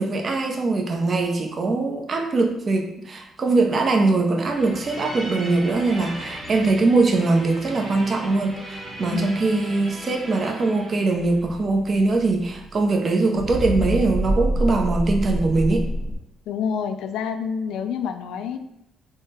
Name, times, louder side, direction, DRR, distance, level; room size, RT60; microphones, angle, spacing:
voice 1, 0.0-15.9, right 3 dB, 40° right, 3 dB, 0.6 m, -22 dB
sound 1, 4.5-13.1 13.4-16.2, equal, 20° right, 1.3 m, -30 dB
voice 2, 16.5-18.6, left 7 dB, 85° left, 8 dB, 0.3 m, -28 dB
3.6 x 2.1 x 4.2 m, 0.82 s
cardioid pair, 90°, 0 cm